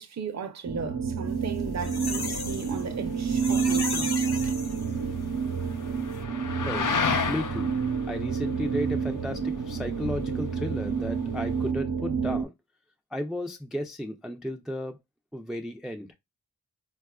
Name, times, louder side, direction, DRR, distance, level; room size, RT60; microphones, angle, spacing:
voice 1, 0.0-4.5, right 5 dB, 45° right, 0.6 m, -36 dB
sound 1, 0.6-12.4, right 5 dB, 85° right, 0.8 m, -29 dB
sound 2, 1.4-5.3 5.7-5.8 6.0-6.2, left 4 dB, 90° left, 0.7 m, -35 dB
sound 3, 1.8-11.7, left 6 dB, 55° left, 0.5 m, -35 dB
voice 2, 7.3-7.7 8.1-12.5 13.1-15.0 15.3-16.1, equal, ahead, 0.4 m, -33 dB
4.1 x 2.3 x 2.2 m
wide cardioid pair, 55°, 38 cm